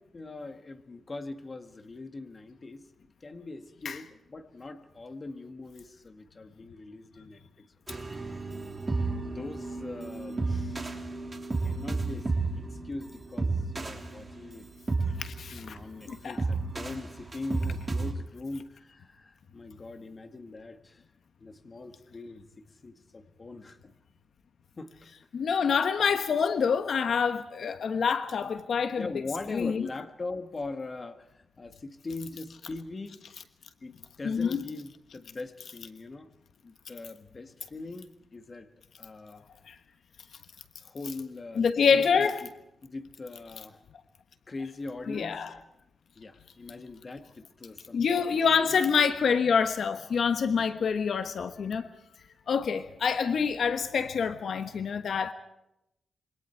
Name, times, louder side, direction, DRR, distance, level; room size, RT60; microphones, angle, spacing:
voice 1, 0.1-2.9 3.2-7.4 7.9-8.5 9.2-10.9 11.6-14.7 15.5-21.0 21.4-23.9 24.8-25.1 28.4-28.6 29.0-33.2 33.8-36.3 36.6-38.7 39.0-39.4 40.8-41.6 41.9-42.5 42.8-43.8 44.5-45.5 46.2-48.8, left 3 dB, 30° left, 1.8 m, -41 dB
sound 1, 7.9-18.1, right 3 dB, 25° right, 3.1 m, -32 dB
voice 2, 15.2-15.8 16.1-16.4 25.3-29.1 29.5-29.9 34.2-34.6 39.7-39.8 41.6-42.4 45.1-45.5 47.9-51.9 52.5-55.3, left 6 dB, 65° left, 1.2 m, -26 dB
27.0 x 24.0 x 4.6 m
wide cardioid pair, 135°, 0 cm